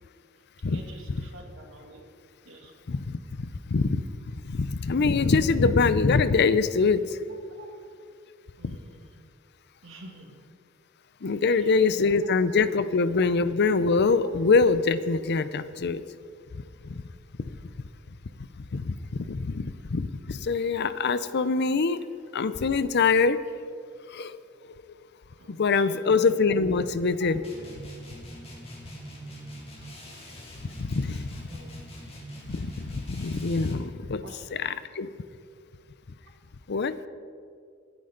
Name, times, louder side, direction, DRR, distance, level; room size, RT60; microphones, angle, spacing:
voice 1, 0.7-2.0 2.4-2.7 7.6-7.7 8.6-9.2 9.8-10.3 11.3-11.9 25.4-26.3 31.5-31.7 34.2-34.4, right 2 dB, 70° right, 1 dB, 2.5 m, -48 dB
voice 2, 2.9-4.0 4.4-7.2 8.6-8.8 11.2-16.0 16.8-17.0 18.7-22.0 22.3-23.4 24.1-24.4 25.5-27.4 30.6-31.5 32.5-34.2 34.5-35.1 36.7-37.0, left 4 dB, 55° left, 14 dB, 0.6 m, -24 dB
sound 1, 27.4-33.9, equal, 30° left, 2.9 m, -43 dB
23.5 x 9.7 x 3.9 m, 2.3 s
head